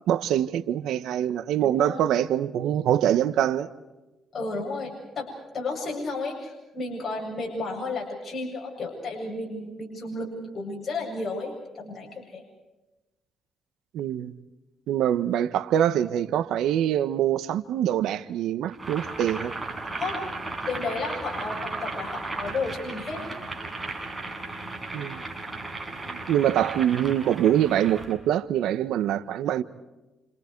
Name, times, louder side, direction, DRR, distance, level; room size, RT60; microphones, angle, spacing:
voice 1, 0.1-3.7 13.9-14.3 14.9-19.5 24.9-25.2 26.2-29.6, right 11 dB, 85° right, 1.2 m, -24 dB
voice 2, 1.6-2.0 4.3-12.4 20.0-20.3 20.7-23.2 26.0-26.2, left 3 dB, 45° left, 7.9 m, -33 dB
Boiling, 18.7-28.1, right 2 dB, 15° right, 6.5 m, -35 dB
29.5 x 29.0 x 4.7 m
cardioid pair, 90°, 0 cm